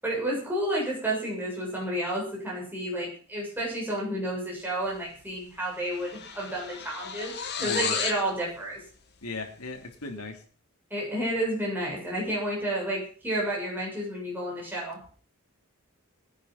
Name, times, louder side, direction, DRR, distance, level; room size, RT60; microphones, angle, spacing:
voice 1, 0.0-8.8 10.9-15.0, right 1 dB, 10° right, -4 dB, 7.1 m, -31 dB
sound 1, 5.1-5.3 5.6-8.3, left 7 dB, 50° left, 2.0 m, -33 dB
voice 2, 7.6-8.0 9.2-10.4, left 3 dB, 75° left, 4 dB, 3.1 m, -37 dB
20.0 x 9.8 x 5.9 m, 0.42 s
head